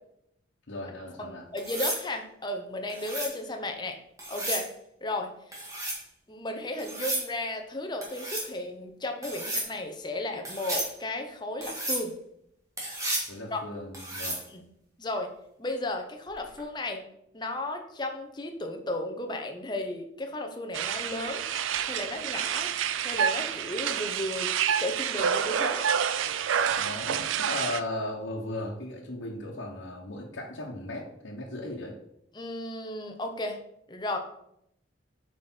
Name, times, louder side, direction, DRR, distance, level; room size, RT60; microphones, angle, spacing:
voice 1, 0.7-1.4 13.3-14.4 26.7-32.0, left 1 dB, 85° left, -3 dB, 1.2 m, -37 dB
voice 2, 1.2-4.0 4.3-4.7 5.0-5.6 6.3-12.1 13.5-13.6 14.5-14.6 15.0-15.3 15.6-17.0 17.3-21.5 21.8-22.7 23.0-24.5 24.8-25.8 32.3-33.6 33.9-34.2, left 1 dB, 20° left, 4 dB, 0.9 m, -34 dB
sound 1, 1.6-2.0 2.9-3.3 4.2-4.7 5.5-6.0 6.8-7.3 8.0-8.5 9.2-9.7 10.4-10.9 11.6-12.0 12.8-13.3 13.9-14.4 16.4-16.6, right 1 dB, 15° right, 1.9 m, -33 dB
sound 2, 20.7-27.8, right 8 dB, 90° right, 0.4 m, -28 dB
7.8 x 5.0 x 4.5 m, 0.77 s
head